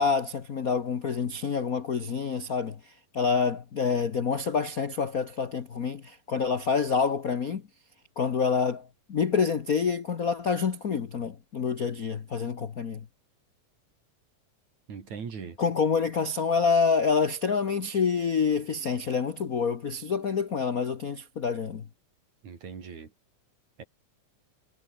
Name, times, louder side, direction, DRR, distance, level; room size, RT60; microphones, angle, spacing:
voice 1, 0.0-7.6 8.2-13.0 15.6-21.8, left 5 dB, 75° left, 0.8 m, -27 dB
voice 2, 14.9-15.6 22.4-23.1 23.8-23.9, right 6 dB, 65° right, 4.8 m, -40 dB
omnidirectional pair, 3.6 m